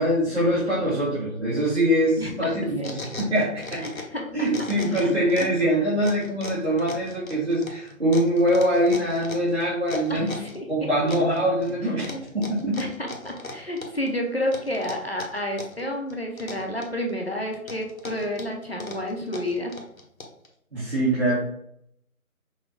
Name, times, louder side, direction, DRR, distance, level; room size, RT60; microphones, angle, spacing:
voice 1, 0.0-3.8 4.3-10.4 10.7-12.8 20.7-21.3, equal, 50° right, -10 dB, 1.8 m, -23 dB
voice 2, 2.2-2.5 2.8-2.9 3.8-4.3 4.9-5.1 10.1-11.1 12.0-12.2 12.8-19.7, left 1 dB, 45° left, 0 dB, 0.8 m, -30 dB
sound 1, 2.5-4.2 4.5-5.6 6.0-10.6 11.1-11.7 12.0-14.1 14.5-15.8 16.1-17.1 17.5-20.5, left 2 dB, 70° left, 1.2 m, -38 dB
6.1 x 2.3 x 3.8 m, 0.71 s
figure-of-eight pair, 180°, 43 cm